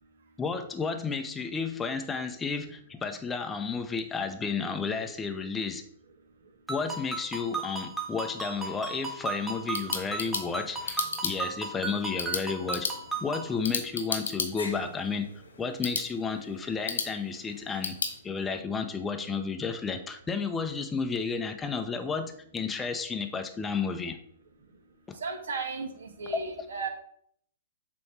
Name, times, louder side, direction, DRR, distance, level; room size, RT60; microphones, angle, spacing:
voice 1, 0.4-5.8 6.7-12.9 13.2-15.3 15.6-18.0 18.2-24.2 25.1-25.2 26.3-26.4, left 5 dB, 15° left, 5 dB, 0.6 m, -32 dB
Ringtone, 6.7-13.5, right 3 dB, 10° right, 1.4 m, -36 dB
sound 1, 9.4-18.2, left 4 dB, 85° left, 1.4 m, -36 dB
voice 2, 25.2-26.9, right 4 dB, 70° right, 4 dB, 1.5 m, -35 dB
7.7 x 3.1 x 5.9 m, 0.67 s
hypercardioid pair, 120°, 0 cm